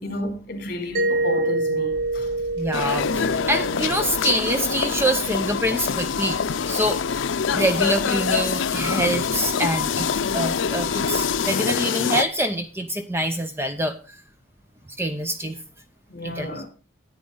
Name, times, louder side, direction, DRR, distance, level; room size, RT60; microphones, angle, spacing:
voice 1, 0.0-2.3 16.1-16.7, left 1 dB, 45° left, 3.1 m, -31 dB
Mallet percussion, 0.9-5.6, right 2 dB, 45° right, 0.9 m, -27 dB
sound 1, 1.9-11.4, equal, 65° right, 5.4 m, -43 dB
voice 2, 2.6-6.4 6.7-7.0 7.5-13.9 15.0-15.6 16.2-16.5, right 1 dB, 10° right, 0.6 m, -25 dB
sound 2, 2.7-12.2, left 6 dB, 85° left, 0.5 m, -25 dB
11.0 x 8.9 x 3.8 m
head